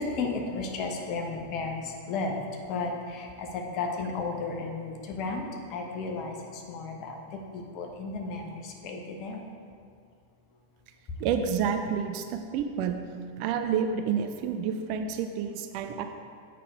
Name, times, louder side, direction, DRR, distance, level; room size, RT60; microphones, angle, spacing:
voice 1, 0.0-2.4 2.7-9.4, left 3 dB, 40° left, 2 dB, 1.1 m, -34 dB
voice 2, 11.2-13.0 13.4-16.0, right 7 dB, 45° right, 6 dB, 0.5 m, -29 dB
7.5 x 5.8 x 4.6 m, 2.2 s
figure-of-eight pair, 90°, 0 cm